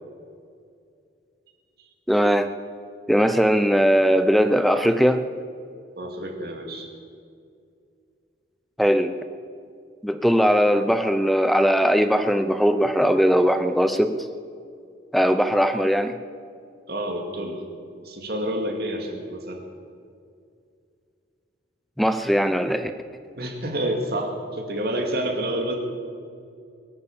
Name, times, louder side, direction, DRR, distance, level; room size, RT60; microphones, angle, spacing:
voice 1, 2.1-2.5 3.1-5.2 8.8-9.1 10.0-14.3 15.1-16.2 22.0-22.9, equal, ahead, 10 dB, 0.5 m, -20 dB
voice 2, 6.0-6.9 16.9-17.6 18.0-19.6 23.4-25.7, right 1 dB, 55° right, 2 dB, 2.3 m, -28 dB
23.0 x 8.8 x 7.2 m, 2.3 s
head